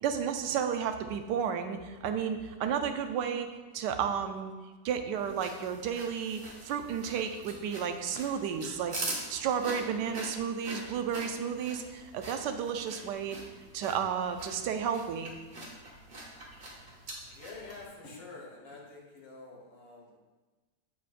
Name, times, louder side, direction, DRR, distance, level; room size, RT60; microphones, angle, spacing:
voice 1, 0.0-4.5 4.8-13.4 13.7-15.3, right 7 dB, 75° right, 7 dB, 1.2 m, -32 dB
Eating Shrub Celery, 5.2-17.9, right 1 dB, 35° right, 0.8 m, -44 dB
voice 2, 17.3-20.2, left 3 dB, 85° left, -2 dB, 2.0 m, -47 dB
7.2 x 5.9 x 2.5 m, 1.3 s
omnidirectional pair, 1.9 m